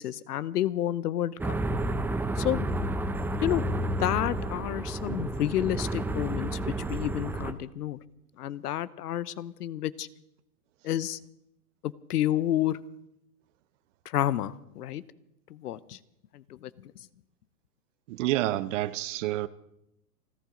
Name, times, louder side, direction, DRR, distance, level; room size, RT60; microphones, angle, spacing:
voice 1, 0.0-1.5 2.4-2.6 3.4-3.6 4.0-8.0 8.4-10.1 10.8-11.2 11.8-12.8 14.0-15.0 15.5-16.0 16.3-16.9, left 12 dB, 75° left, 0.9 m, -30 dB
sound 1, 1.4-7.5, right 1 dB, 5° right, 0.6 m, -31 dB
voice 2, 18.1-19.5, right 15 dB, 50° right, 0.8 m, -28 dB
29.0 x 12.0 x 3.8 m
hypercardioid pair, 115°, 47 cm